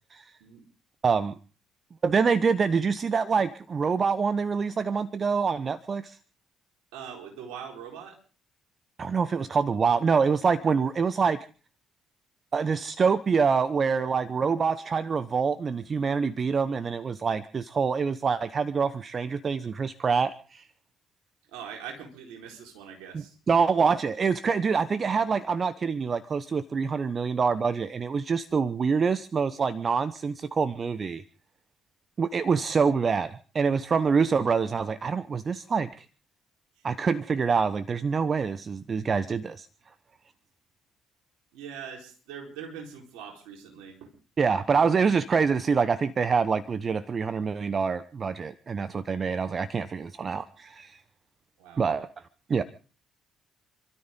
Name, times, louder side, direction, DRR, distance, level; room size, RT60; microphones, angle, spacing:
voice 1, 1.0-1.3 2.0-6.2 9.0-11.4 12.5-20.6 23.1-31.2 32.2-36.1 36.8-39.7 44.4-51.0 51.8-52.1 52.5-52.6, right 5 dB, 40° right, 14 dB, 0.9 m, -26 dB
voice 2, 6.9-8.2 21.5-23.4 36.8-36.9 41.5-44.1 51.6-51.8, right 7 dB, 70° right, 1 dB, 4.3 m, -42 dB
28.5 x 13.0 x 3.8 m, 0.38 s
figure-of-eight pair, 45°, 0 cm